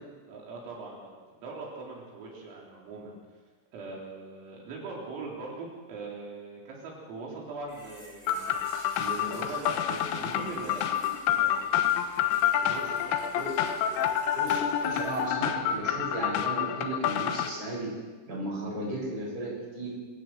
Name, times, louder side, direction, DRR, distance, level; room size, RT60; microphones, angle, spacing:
voice 1, 0.3-3.2 3.7-10.9 11.3-11.6 12.5-13.2, right 3 dB, 80° right, -3 dB, 6.5 m, -41 dB
Trickle dribble / Fill (with liquid), 7.5-16.3, left 1 dB, 30° left, 8.9 m, -48 dB
sound 1, 8.3-17.5, left 9 dB, 70° left, 3.1 m, -28 dB
voice 2, 14.3-17.9 18.3-19.9, right 1 dB, 15° right, -3 dB, 7.1 m, -35 dB
25.0 x 13.5 x 8.0 m, 1.4 s
omnidirectional pair, 6.0 m